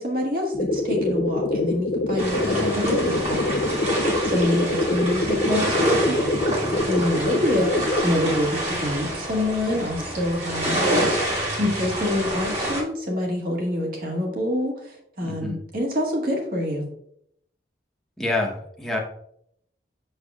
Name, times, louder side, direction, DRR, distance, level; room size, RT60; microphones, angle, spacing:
voice 1, 0.0-3.6 4.0-6.3 6.8-16.9, left 1 dB, 55° right, -1 dB, 1.7 m, -26 dB
sound 1, 0.5-8.1, left 2 dB, 45° left, 0.5 m, -25 dB
sound 2, 2.2-12.8, right 1 dB, 40° right, 1.8 m, -27 dB
voice 2, 15.2-15.6 18.2-19.0, left 2 dB, ahead, -2 dB, 1.0 m, -27 dB
6.5 x 6.3 x 2.4 m, 0.70 s
head